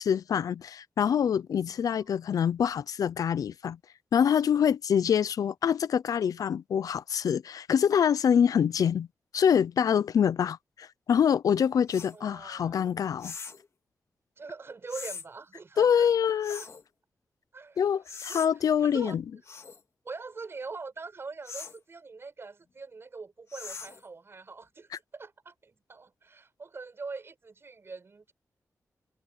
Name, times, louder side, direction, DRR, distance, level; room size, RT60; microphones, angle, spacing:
voice 1, 0.0-3.8 4.1-9.1 9.3-13.3 15.8-16.6 17.8-19.2, left 8 dB, 85° left, 0.5 m, -25 dB
sound 1, 11.9-12.1 13.2-13.7 14.9-15.3 16.4-16.8 18.0-18.5 19.4-19.8 21.4-21.8 23.5-24.1, left 5 dB, 55° left, 2.6 m, -41 dB
voice 2, 12.1-12.9 14.4-16.7 17.5-17.9 18.3-18.4 18.8-19.1 20.0-28.3, right 4 dB, 45° right, 6.3 m, -43 dB
wide cardioid pair, 105°, 6 cm